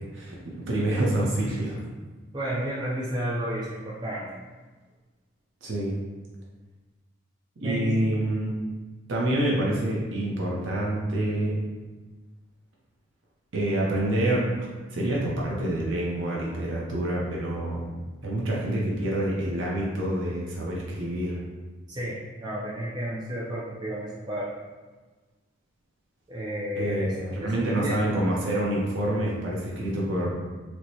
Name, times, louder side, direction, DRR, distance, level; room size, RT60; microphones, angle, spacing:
voice 1, 0.1-1.8 5.6-5.9 7.6-8.5 9.1-11.6 13.5-17.9 18.2-21.4 26.8-30.3, right 1 dB, 70° right, -4 dB, 0.6 m, -27 dB
voice 2, 2.3-4.3 7.6-7.9 21.9-24.5 26.3-27.1 27.4-28.1, equal, 20° right, -6 dB, 0.4 m, -32 dB
4.4 x 2.1 x 2.7 m, 1.3 s
head